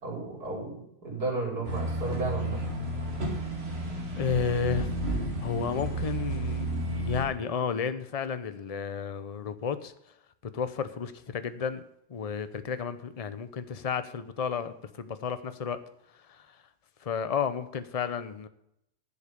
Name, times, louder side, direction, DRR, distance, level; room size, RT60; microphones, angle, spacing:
voice 1, 0.0-2.6, right 3 dB, 75° right, -2 dB, 5.2 m, -33 dB
sound 1, 1.6-7.2, right 1 dB, 40° right, 2.4 m, -32 dB
voice 2, 4.1-4.9 5.4-9.9 10.4-11.8 12.1-15.8 16.3-16.4 17.0-18.5, left 6 dB, 35° left, 12 dB, 0.6 m, -32 dB
11.0 x 7.9 x 7.0 m, 0.78 s
omnidirectional pair, 1.6 m